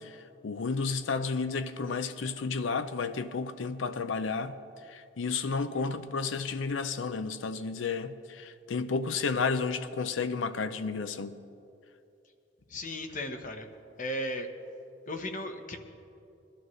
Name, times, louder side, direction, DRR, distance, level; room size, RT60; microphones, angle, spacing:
voice 1, 0.0-4.6 4.9-11.4, left 4 dB, 90° left, 0.6 m, -32 dB
voice 2, 12.7-13.7 14.0-14.5 15.1-15.8, left 1 dB, 45° left, 0.9 m, -36 dB
21.5 x 11.5 x 3.2 m
head